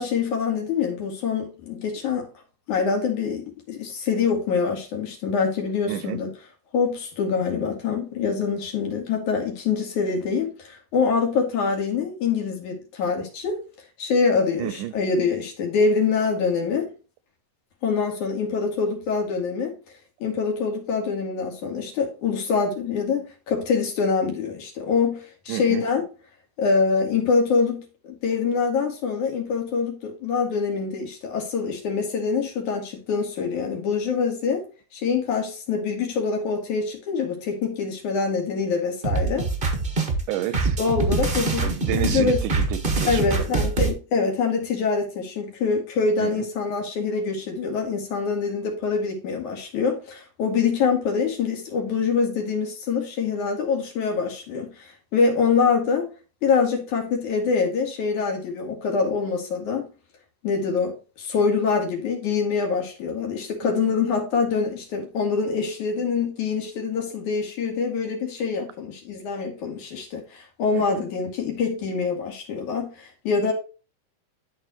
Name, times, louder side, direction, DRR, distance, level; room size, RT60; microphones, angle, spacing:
voice 1, 0.0-2.3 2.7-6.3 6.7-13.6 14.0-16.9 17.8-19.7 20.2-26.0 26.6-27.9 28.2-34.6 34.9-39.5 40.8-42.4 43.0-56.1 56.4-59.9 60.4-73.5, left 5 dB, 70° left, 3.7 m, -25 dB
voice 2, 5.9-6.2 14.6-14.9 25.5-25.9 40.3-40.8 41.6-43.6 46.2-46.5 63.6-63.9 70.7-71.0, right 13 dB, 85° right, 2.2 m, -31 dB
sound 1, 39.0-43.9, right 3 dB, 40° right, 0.7 m, -24 dB
12.5 x 4.8 x 2.9 m
omnidirectional pair, 3.6 m